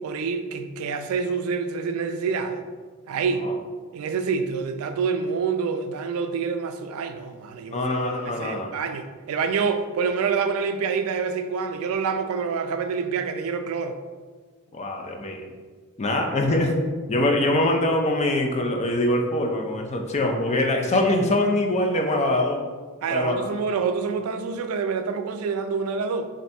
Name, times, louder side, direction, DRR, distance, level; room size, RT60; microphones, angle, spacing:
voice 1, 0.0-2.6 3.1-3.5 3.9-8.0 8.2-14.0 23.0-26.3, right 5 dB, 70° right, 0.3 m, -27 dB
voice 2, 7.7-8.7 14.7-15.5 16.0-16.7 17.1-22.6 23.1-23.5, left 1 dB, 30° left, 0.4 m, -23 dB
3.3 x 2.6 x 4.1 m
head